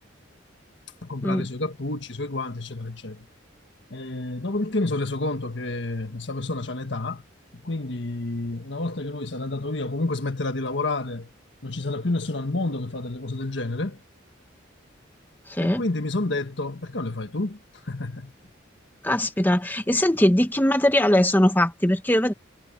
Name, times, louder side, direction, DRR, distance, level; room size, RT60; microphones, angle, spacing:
voice 1, 1.0-3.3 3.9-7.2 7.5-11.3 11.6-14.0 15.6-17.6 17.8-18.3, left 2 dB, 65° left, 1.6 m, -29 dB
voice 2, 15.5-15.8 19.0-22.3, left 1 dB, 10° left, 1.2 m, -21 dB
head